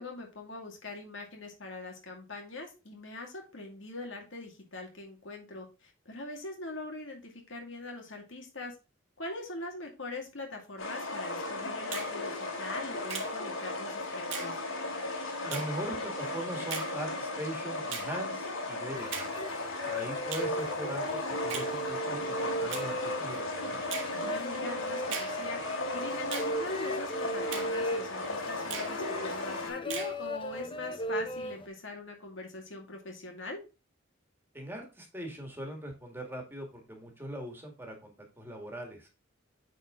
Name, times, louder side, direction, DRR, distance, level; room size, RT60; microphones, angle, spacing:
voice 1, 0.0-8.7 9.2-14.5 24.1-25.6 25.9-33.6, left 2 dB, 70° left, 2 dB, 2.2 m, -42 dB
sound 1, 10.8-29.7, left 2 dB, 85° left, 2.4 m, -36 dB
Finger snapping, 11.9-12.1 13.1-13.3 14.3-14.5 15.5-15.7 16.7-16.9 17.9-18.1 19.1-19.3 20.3-20.5 21.5-21.7 22.7-22.9 23.9-24.1 25.1-25.3 26.3-26.5 27.5-27.7 28.7-28.9 29.9-30.1, right 6 dB, 75° right, 1.9 m, -38 dB
voice 2, 15.4-19.6 19.8-23.8 34.5-39.1, right 1 dB, 10° right, 2 dB, 2.0 m, -40 dB
sound 2, 18.9-31.7, equal, 25° left, 0.7 m, -37 dB
9.2 x 4.3 x 3.8 m, 0.29 s
head